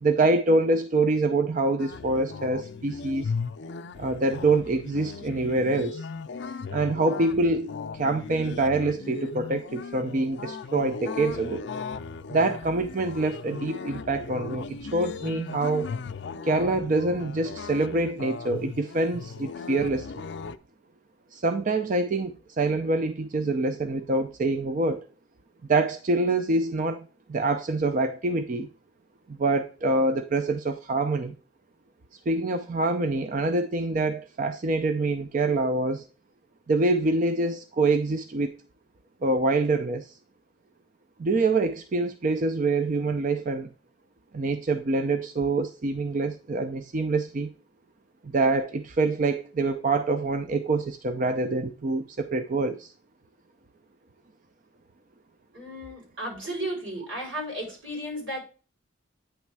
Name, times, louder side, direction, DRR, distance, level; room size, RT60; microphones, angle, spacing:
voice 1, 0.0-3.3 4.0-6.0 6.7-11.7 12.3-15.9 16.4-20.2 21.3-25.1 25.7-28.7 29.3-31.3 32.3-36.0 36.7-38.6 39.2-40.1 41.2-43.7 44.3-47.5 48.2-52.9, right 2 dB, 40° right, 0.4 m, -25 dB
sound 1, 1.8-20.6, left 5 dB, 60° left, 0.4 m, -37 dB
voice 2, 55.5-58.4, equal, 85° right, 4.2 m, -34 dB
9.0 x 3.2 x 4.6 m
head